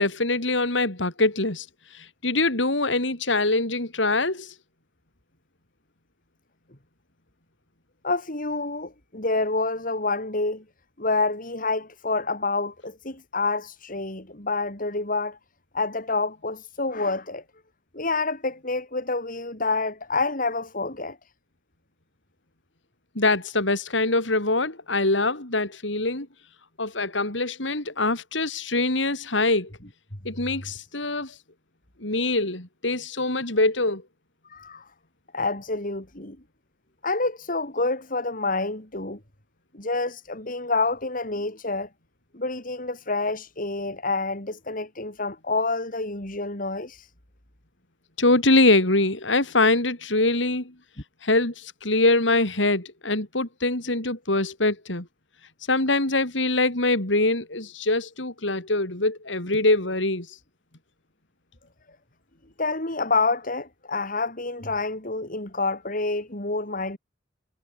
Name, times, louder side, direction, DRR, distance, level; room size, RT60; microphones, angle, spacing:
voice 1, 0.0-1.7 1.9-4.5 23.1-26.3 26.8-29.7 30.2-31.3 32.0-34.0 48.2-50.7 51.2-55.1 55.7-60.3, left 2 dB, 80° left, 4.9 m, -23 dB
voice 2, 8.0-10.6 11.0-15.4 15.7-17.4 17.9-21.2 34.5-34.9 35.3-36.4 37.0-39.2 39.7-41.9 42.3-47.1 62.6-67.0, left 3 dB, 45° left, 5.3 m, -28 dB
head